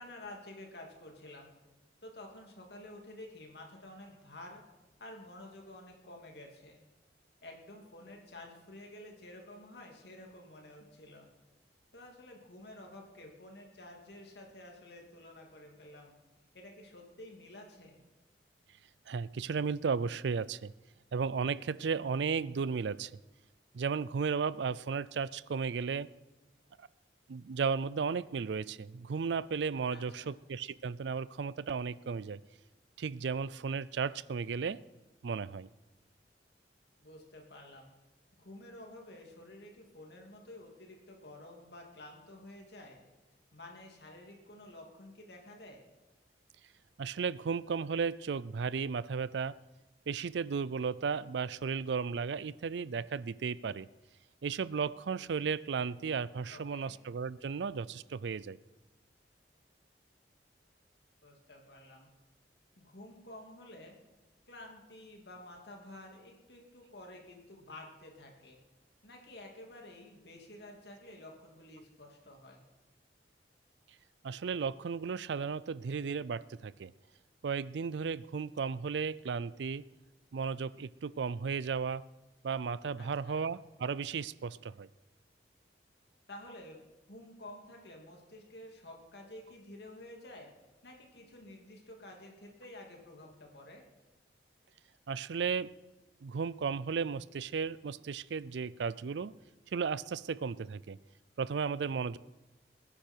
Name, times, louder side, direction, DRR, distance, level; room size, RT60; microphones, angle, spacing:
voice 1, 0.0-1.5 2.0-4.6 5.0-6.8 7.4-11.3 11.9-16.1 16.5-18.0 29.9-30.4 37.0-37.9 38.4-43.0 43.5-45.9 56.5-57.0 61.2-62.1 62.8-64.0 64.5-68.6 69.0-72.6 83.0-83.4 86.3-86.8 87.1-90.5 90.8-93.8, left 1 dB, 65° left, 1 dB, 2.7 m, -51 dB
voice 2, 19.1-20.7 21.1-23.1 23.7-26.1 26.8-26.9 27.3-32.4 33.0-34.8 35.2-35.7 47.0-49.6 50.1-53.9 54.4-58.6 74.2-76.9 77.4-79.8 80.3-82.0 82.4-84.9 95.1-95.7 96.2-99.3 99.7-101.0 101.4-102.2, right 5 dB, 75° right, 20 dB, 0.4 m, -34 dB
21.0 x 10.0 x 4.6 m, 1.1 s
head